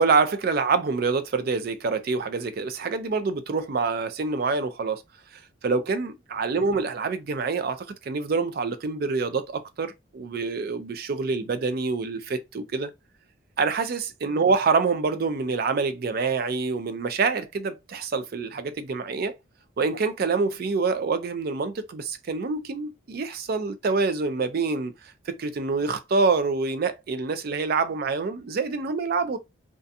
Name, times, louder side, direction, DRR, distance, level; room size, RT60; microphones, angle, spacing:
voice 1, 0.0-5.0 5.3-12.9 13.6-19.4 19.8-29.4, right 4 dB, 45° right, 0.3 m, -26 dB
2.4 x 2.2 x 2.6 m
head